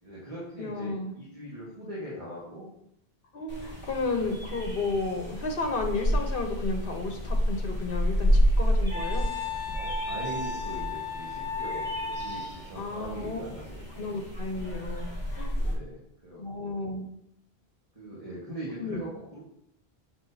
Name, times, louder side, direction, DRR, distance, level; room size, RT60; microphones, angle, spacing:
voice 1, 0.0-2.7 9.7-14.1 15.5-16.7 17.9-19.4, right 1 dB, 35° right, -7 dB, 1.7 m, -41 dB
voice 2, 0.6-1.2 3.3-9.3 12.7-13.4 14.0-15.6 16.4-17.1 18.8-19.0, left 3 dB, 60° left, 3 dB, 1.2 m, -32 dB
sound 1, 3.5-15.7, equal, 10° right, 2.2 m, -30 dB
Wind instrument woodwind instrument, 8.9-12.6, left 3 dB, 60° right, 2.4 m, -34 dB
6.6 x 6.1 x 2.8 m, 0.76 s
omnidirectional pair, 1.1 m